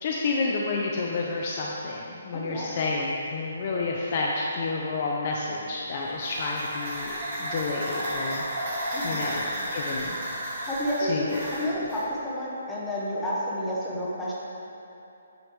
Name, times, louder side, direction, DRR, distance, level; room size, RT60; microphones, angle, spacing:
voice 1, 0.0-8.5 9.0-10.7 11.0-11.4, left 3 dB, 30° left, -2 dB, 0.4 m, -30 dB
voice 2, 2.3-2.8 8.9-9.2 10.6-14.3, equal, 5° left, -8 dB, 0.8 m, -30 dB
sound 1, 5.8-12.1, right 1 dB, 35° right, 1.3 m, -33 dB
9.0 x 4.9 x 3.2 m, 3.0 s
hypercardioid pair, 175°, 0 cm